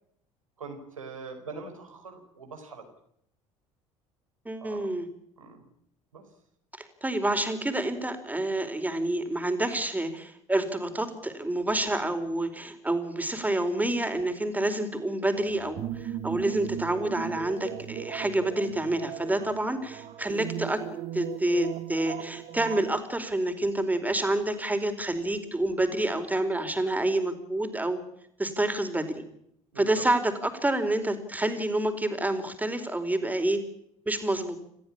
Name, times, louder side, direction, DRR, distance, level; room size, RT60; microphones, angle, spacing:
voice 1, 0.6-2.8 4.6-4.9 5.4-5.6 6.1-6.2 29.7-30.0, right 4 dB, 85° right, 4 dB, 4.6 m, -42 dB
voice 2, 4.4-5.1 6.8-20.8 21.1-28.0 28.4-29.2 29.8-33.6 34.1-34.6, right 1 dB, 10° right, 8 dB, 4.5 m, -28 dB
sound 1, 15.3-23.0, right 12 dB, 50° right, 1.5 m, -38 dB
28.5 x 14.5 x 8.7 m, 0.74 s
figure-of-eight pair, 65°, 17 cm